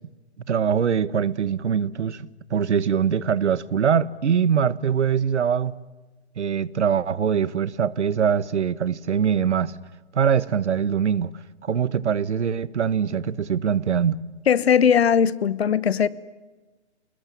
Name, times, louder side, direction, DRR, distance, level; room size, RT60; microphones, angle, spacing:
voice 1, 0.5-5.7 6.4-9.7 10.1-11.3 11.6-14.2, right 7 dB, 80° right, 1.3 m, -23 dB
voice 2, 14.5-16.1, left 7 dB, 65° left, 1.2 m, -19 dB
28.5 x 21.0 x 9.9 m
hypercardioid pair, 165°, 34 cm